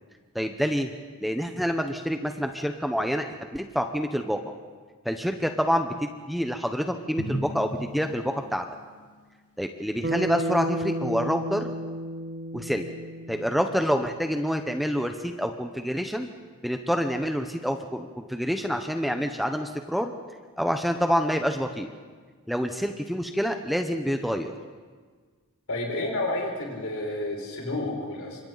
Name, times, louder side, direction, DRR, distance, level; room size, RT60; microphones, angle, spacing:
voice 1, 0.3-0.9 1.2-4.4 5.0-8.6 9.6-11.7 12.5-12.8 13.3-16.3 16.6-20.1 20.6-21.9 22.5-24.5, equal, ahead, 5 dB, 0.9 m, -27 dB
Drum, 7.2-8.9, equal, 90° left, 2.3 m, -35 dB
Bass guitar, 10.0-14.4, right 1 dB, 40° right, 0.6 m, -32 dB
voice 2, 25.7-28.4, left 2 dB, 70° left, -1 dB, 6.1 m, -30 dB
28.5 x 25.5 x 4.1 m, 1.5 s
head